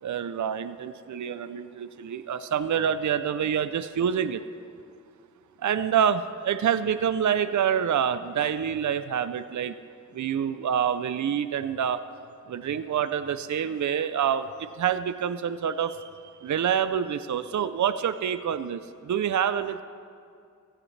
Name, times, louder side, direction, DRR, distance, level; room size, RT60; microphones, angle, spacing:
voice 1, 0.0-4.4 5.6-9.7 10.1-12.0 12.5-16.1 16.4-19.8, right 8 dB, 65° right, 12 dB, 0.5 m, -27 dB
16.0 x 14.0 x 3.2 m, 2.4 s
wide cardioid pair, 65°, 31 cm